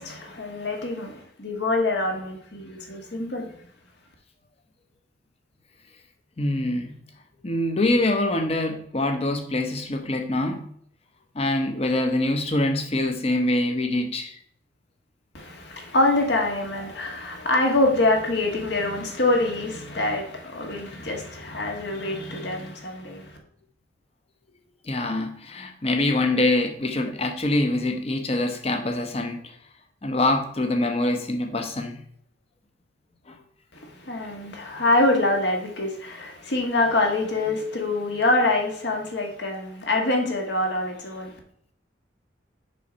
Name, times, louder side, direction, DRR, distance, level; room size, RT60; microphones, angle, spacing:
voice 1, 0.0-3.5 15.3-23.4 33.7-41.3, left 2 dB, 60° left, 1.5 m, -25 dB
voice 2, 6.4-6.9 7.4-10.7 11.3-14.3 24.8-29.5 30.0-32.0 33.3-33.4, left 2 dB, 30° left, 0.9 m, -24 dB
6.5 x 5.4 x 4.0 m
head